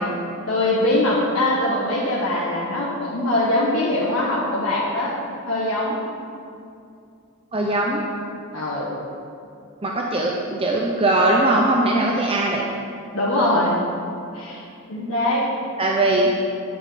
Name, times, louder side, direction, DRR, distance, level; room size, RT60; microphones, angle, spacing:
voice 1, 0.5-5.1 5.4-6.0 8.5-8.9 13.1-13.8 14.3-14.6 14.9-15.4, left 1 dB, 70° left, -7 dB, 1.6 m, -22 dB
voice 2, 7.5-8.0 9.8-12.6 15.8-16.3, right 2 dB, 25° right, -1 dB, 0.8 m, -20 dB
9.6 x 8.7 x 5.1 m, 2.5 s
head